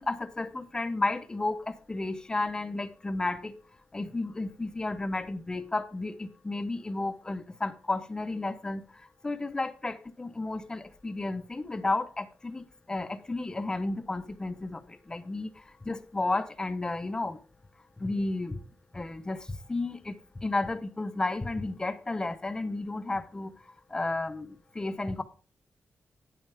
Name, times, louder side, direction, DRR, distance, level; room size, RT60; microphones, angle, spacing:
voice 1, 0.0-3.5 3.9-8.8 9.2-17.4 18.0-18.6 18.9-23.5 23.9-25.2, left 2 dB, 15° left, 0.7 m, -32 dB
9.5 x 8.9 x 3.4 m
wide cardioid pair, 165°, 4 cm